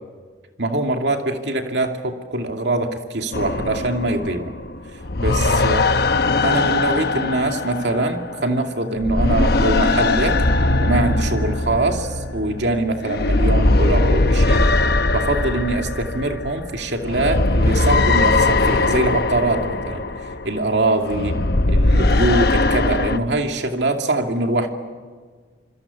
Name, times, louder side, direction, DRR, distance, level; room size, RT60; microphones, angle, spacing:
voice 1, 0.6-4.5 5.2-5.8 6.4-10.4 10.8-14.6 15.1-20.0 20.4-21.4 21.7-24.7, right 2 dB, 75° right, 3 dB, 2.5 m, -23 dB
sound 1, 3.3-8.7 9.0-23.2, left 2 dB, 60° left, 1.0 m, -20 dB
27.0 x 25.0 x 7.1 m, 1.5 s
head